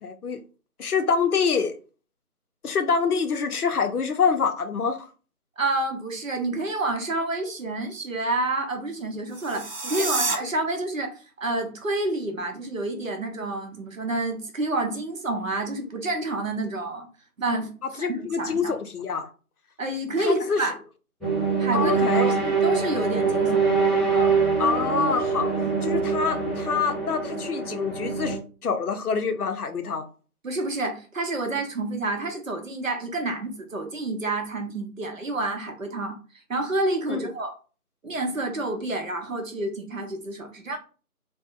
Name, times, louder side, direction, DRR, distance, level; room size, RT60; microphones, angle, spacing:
voice 1, 0.0-0.4 0.8-1.8 2.6-5.1 10.0-10.1 18.0-19.3 20.2-20.7 21.7-22.3 24.6-25.5 25.8-30.1 37.1-37.2, left 5 dB, 75° left, 0.6 m, -26 dB
voice 2, 5.6-17.1 17.4-18.8 19.8-20.7 21.6-23.6 24.1-24.4 25.6-25.7 30.4-36.2 36.5-37.5 38.0-40.8, right 2 dB, 60° right, 0.8 m, -29 dB
sound 1, 9.3-10.4, right 3 dB, 90° right, 0.8 m, -28 dB
sound 2, 21.2-28.4, right 5 dB, ahead, 0.6 m, -24 dB
2.7 x 2.1 x 2.5 m
figure-of-eight pair, 165°, 45 cm